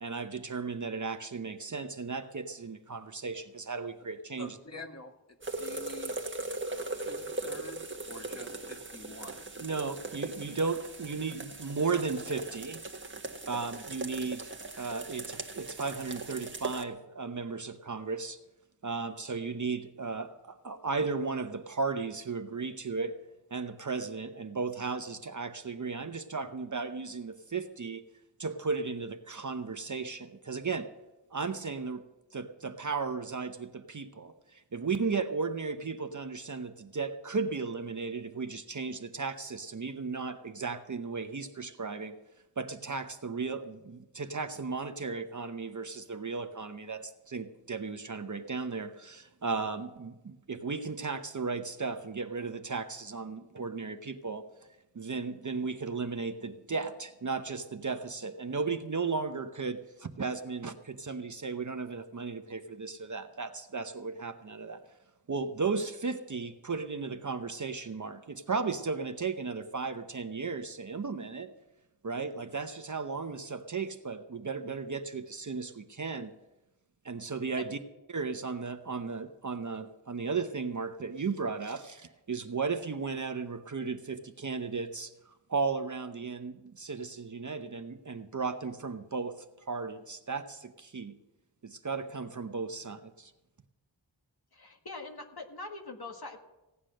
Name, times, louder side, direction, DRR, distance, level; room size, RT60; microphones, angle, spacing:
voice 1, 0.0-4.6 9.6-12.8 13.5-14.5 14.8-18.4 18.8-23.2 23.5-28.0 28.4-30.9 31.3-32.0 32.3-42.2 42.6-54.5 54.9-64.8 65.3-71.5 72.0-76.3 77.0-77.8 78.1-85.1 85.5-91.2 91.6-93.3, right 4 dB, 40° right, 0.8 m, -35 dB
voice 2, 4.4-5.1 5.6-6.2 6.9-9.5, left 1 dB, 35° left, 1.6 m, -46 dB
sound 1, 5.4-16.8, right 2 dB, 25° right, 1.4 m, -39 dB
voice 3, 94.5-96.4, left 3 dB, 55° left, 1.9 m, -43 dB
16.5 x 9.7 x 6.4 m
wide cardioid pair, 80°, 44 cm